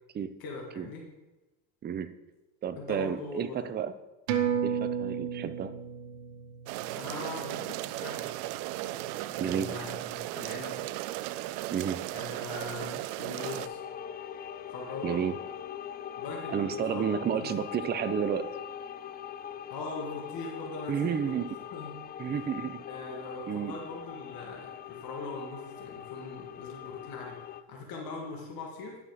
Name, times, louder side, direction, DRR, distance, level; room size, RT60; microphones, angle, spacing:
voice 1, 0.4-1.1 2.8-3.7 6.9-8.4 9.3-10.8 12.1-13.8 14.7-15.2 16.2-17.5 19.7-21.3 21.7-21.9 22.9-29.0, left 3 dB, 55° left, 0 dB, 1.8 m, -41 dB
voice 2, 2.6-3.9 4.6-5.7 9.4-9.7 11.7-12.0 15.0-15.3 16.5-18.5 20.9-21.5 22.2-22.8 23.5-23.7, right 8 dB, 25° right, 12 dB, 0.5 m, -31 dB
sound 1, 4.3-9.2 9.6-9.7, right 8 dB, 85° right, 1.2 m, -34 dB
sound 2, 6.7-13.7, right 15 dB, 70° right, 0.5 m, -36 dB
sound 3, 13.4-27.6, left 9 dB, 25° left, 0.3 m, -42 dB
10.5 x 5.8 x 5.0 m, 1.1 s
supercardioid pair, 95°, 43 cm